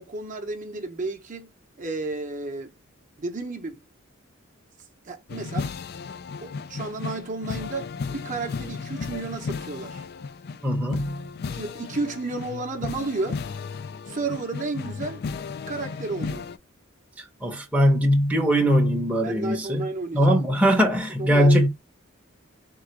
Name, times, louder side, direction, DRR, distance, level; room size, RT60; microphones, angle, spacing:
voice 1, 0.0-1.5 1.8-2.7 3.2-3.8 5.0-5.7 6.4-10.0 11.5-13.4 14.1-15.2 15.7-16.5 19.2-20.4 21.2-21.7, right 3 dB, 35° right, 0.8 m, -32 dB
sound 1, 5.3-16.6, left 5 dB, 50° left, 0.3 m, -34 dB
voice 2, 10.6-11.3 17.4-19.8 20.1-21.7, equal, 5° right, 0.7 m, -21 dB
3.8 x 2.4 x 4.5 m
head